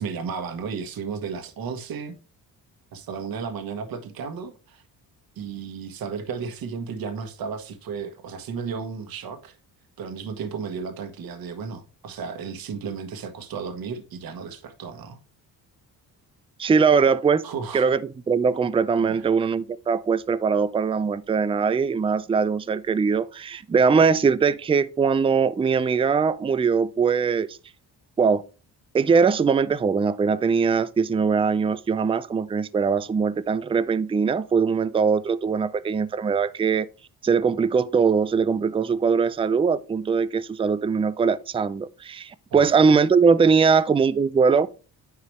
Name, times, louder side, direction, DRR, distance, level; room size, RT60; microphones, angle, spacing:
voice 1, 0.0-2.2 2.9-4.8 5.4-9.6 10.0-15.2 16.6-16.7 17.4-17.8 19.0-19.3 42.5-42.6, right 6 dB, 65° right, 1.4 m, -34 dB
voice 2, 16.6-17.4 17.7-27.6 28.2-28.4 28.9-36.9 37.2-44.7, right 5 dB, 15° right, 0.4 m, -21 dB
9.7 x 4.8 x 3.2 m
cardioid pair, 85°, 39 cm